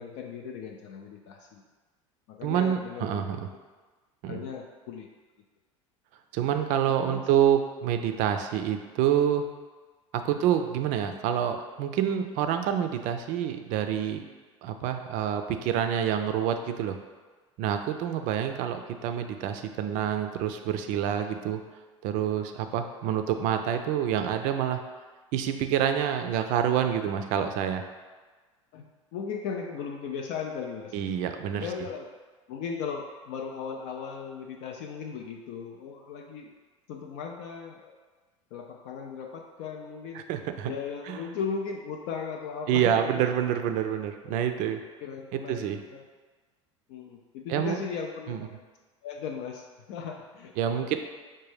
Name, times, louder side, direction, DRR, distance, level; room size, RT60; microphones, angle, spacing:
voice 1, 0.0-1.6 2.3-3.3 4.3-5.1 6.9-7.3 10.3-10.4 22.3-22.4 28.7-31.2 31.6-32.1 32.5-36.5 36.9-38.0 38.5-40.3 40.7-43.3 45.0-46.0 46.9-48.6 49.0-51.0, left 6 dB, 60° left, 2 dB, 0.4 m, -37 dB
voice 2, 2.4-3.4 4.2-4.4 6.3-9.5 10.2-14.2 14.6-17.0 17.6-21.6 22.0-24.8 25.3-27.8 30.9-31.7 40.1-40.7 41.1-41.2 42.7-44.8 45.5-45.8 47.5-47.8 48.3-48.4 50.6-51.0, right 9 dB, 50° right, 7 dB, 0.4 m, -27 dB
5.0 x 2.2 x 3.2 m, 1.3 s
hypercardioid pair, 75°, 16 cm